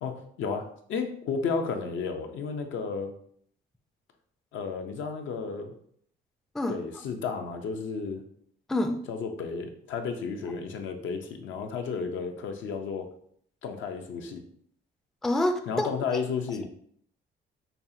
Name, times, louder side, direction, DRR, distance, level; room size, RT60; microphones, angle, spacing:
voice 1, 0.0-3.1 4.5-5.7 6.7-8.2 9.1-13.1 13.6-14.4 15.7-16.6, left 5 dB, 75° left, 5 dB, 0.6 m, -33 dB
voice 2, 8.7-9.0 15.2-15.9, left 1 dB, ahead, 6 dB, 0.3 m, -26 dB
5.3 x 2.4 x 2.7 m, 0.63 s
cardioid pair, 90°, 20 cm